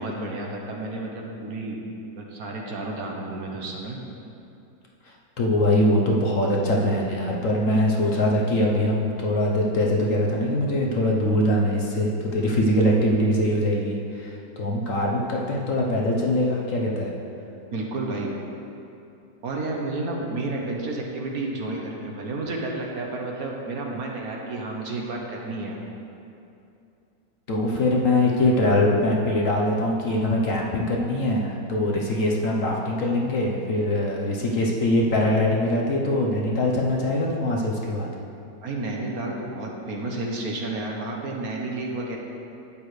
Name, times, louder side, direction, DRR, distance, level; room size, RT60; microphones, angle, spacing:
voice 1, 0.0-1.8 2.2-4.0 17.7-18.3 19.4-25.8 38.6-42.2, right 2 dB, 60° right, -1 dB, 1.4 m, -31 dB
voice 2, 5.4-17.1 27.5-38.1, left 1 dB, 55° left, -2 dB, 1.2 m, -22 dB
12.0 x 8.7 x 3.3 m, 2.7 s
omnidirectional pair, 1.9 m